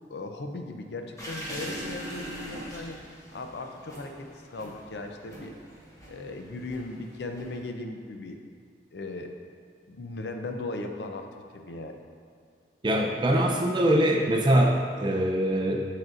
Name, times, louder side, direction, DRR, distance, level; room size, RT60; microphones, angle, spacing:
voice 1, 0.1-3.0 3.3-5.5 6.1-8.4 8.9-9.3 9.9-11.9, left 2 dB, 65° left, 4 dB, 0.5 m, -37 dB
sound 1, 1.2-7.7, equal, 20° left, 0.9 m, -42 dB
voice 2, 12.8-15.9, right 1 dB, 25° right, 1 dB, 0.5 m, -23 dB
7.4 x 6.4 x 2.5 m, 2.2 s
head